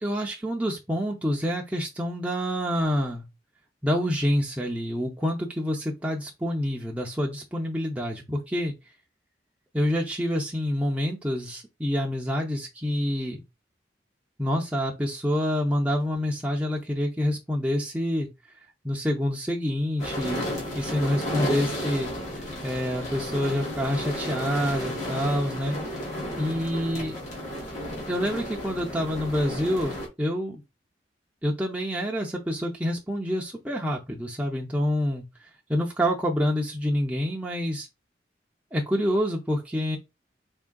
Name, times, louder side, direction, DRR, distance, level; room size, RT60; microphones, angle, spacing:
voice 1, 0.0-3.3 3.8-8.7 9.7-13.4 14.4-18.3 18.8-20.4 20.8-22.1 22.4-25.8 26.3-27.2 28.1-30.6 31.4-35.3 35.7-37.9 38.7-40.0, equal, 5° right, 0.5 m, -27 dB
sound 1, 20.0-30.1, equal, 40° left, 1.4 m, -33 dB
3.5 x 3.5 x 2.2 m
head